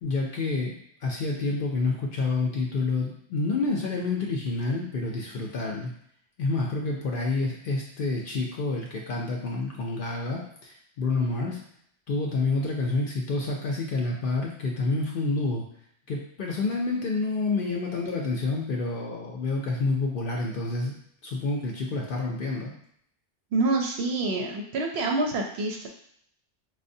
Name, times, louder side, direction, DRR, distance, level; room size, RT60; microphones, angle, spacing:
voice 1, 0.0-5.9 6.4-11.6 12.1-15.6 16.1-21.0 21.2-22.7, left 3 dB, 60° left, -1 dB, 0.6 m, -28 dB
voice 2, 23.5-25.9, right 2 dB, 65° right, 1 dB, 0.8 m, -27 dB
4.6 x 2.1 x 2.6 m, 0.69 s
omnidirectional pair, 1.2 m